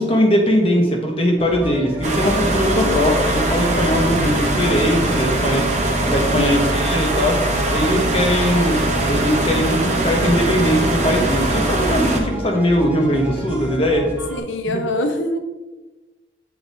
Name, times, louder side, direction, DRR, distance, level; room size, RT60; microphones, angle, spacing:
voice 1, 0.0-7.4 7.7-14.1, equal, 30° left, 2 dB, 1.0 m, -20 dB
sound 1, 1.4-14.4, equal, 10° right, 0.8 m, -32 dB
sound 2, 2.0-12.2, right 2 dB, 40° right, 1.0 m, -21 dB
voice 2, 2.8-3.2 6.3-6.9 14.3-15.4, left 1 dB, 85° left, 7 dB, 0.7 m, -25 dB
8.0 x 4.7 x 2.7 m, 1.2 s
head